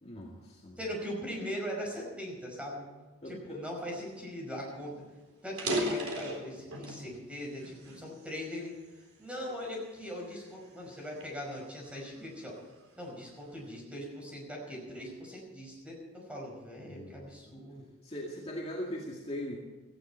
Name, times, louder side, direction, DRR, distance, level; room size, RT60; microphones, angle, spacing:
voice 1, 0.0-0.8 3.2-3.6 16.8-17.5 18.0-19.6, equal, 30° left, -3 dB, 2.1 m, -40 dB
voice 2, 0.8-2.9 3.3-4.9 5.4-8.7 9.2-12.5 13.0-16.0 16.3-17.8, equal, 5° right, -1 dB, 5.3 m, -40 dB
sound 1, 4.4-4.5 4.8-4.9 5.4-7.1 7.6-8.9 9.5-9.7 10.3-12.4, right 1 dB, 75° right, 4.1 m, -36 dB
17.5 x 15.0 x 4.5 m, 1.3 s
head